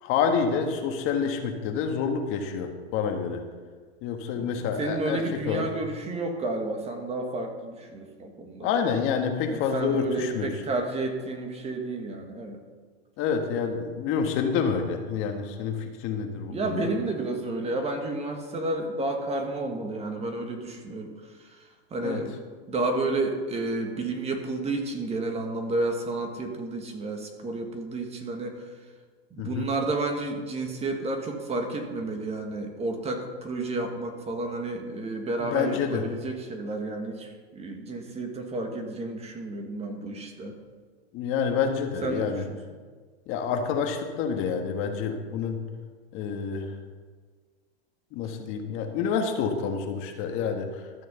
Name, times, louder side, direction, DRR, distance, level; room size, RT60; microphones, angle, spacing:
voice 1, 0.0-3.4 4.0-5.7 8.6-10.5 13.2-16.8 22.0-22.2 29.4-29.7 35.4-36.0 41.1-42.4 43.3-45.6 46.1-46.7 48.1-51.0, left 6 dB, 40° left, 5 dB, 1.5 m, -28 dB
voice 2, 4.4-8.7 9.5-12.6 16.4-22.4 22.7-28.6 29.3-40.5 42.0-42.6, right 2 dB, 20° right, 4 dB, 1.6 m, -31 dB
13.0 x 6.2 x 6.8 m, 1.5 s
hypercardioid pair, 125°, 32 cm